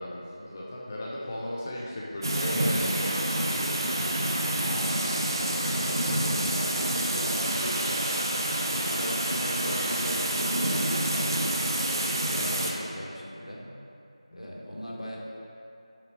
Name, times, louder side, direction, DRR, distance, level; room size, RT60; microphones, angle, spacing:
voice 1, 0.0-4.3 5.4-5.6 8.5-8.9 14.3-14.6, left 1 dB, 20° left, -5 dB, 0.4 m, -37 dB
sound 1, 2.2-12.7, right 1 dB, 35° right, 0.6 m, -28 dB
voice 2, 4.7-5.3 6.4-8.2 8.8-11.7 12.3-13.7 14.3-15.2, equal, 80° left, -4 dB, 1.5 m, -38 dB
5.7 x 5.0 x 4.3 m, 2.7 s
figure-of-eight pair, 170°, 3 cm